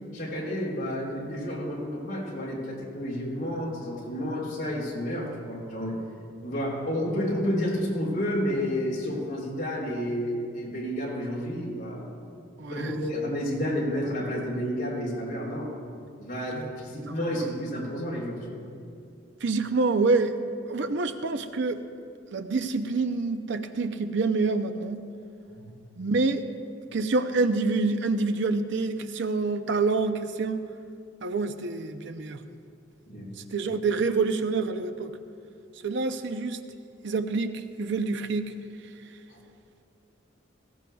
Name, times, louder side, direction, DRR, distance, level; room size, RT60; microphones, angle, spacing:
voice 1, 0.1-6.0 6.4-12.1 12.7-15.7 16.2-18.6 25.5-25.8 33.1-33.3 39.3-39.4, equal, 50° left, -4 dB, 3.9 m, -30 dB
voice 2, 12.6-13.0 16.6-16.7 17.1-17.2 19.4-20.3 20.7-21.8 22.3-25.0 26.0-26.4 26.9-30.6 31.2-32.4 33.5-35.2 35.8-36.6 37.0-38.5, right 3 dB, 65° right, 8 dB, 0.6 m, -27 dB
19.5 x 16.5 x 2.3 m, 2.4 s
head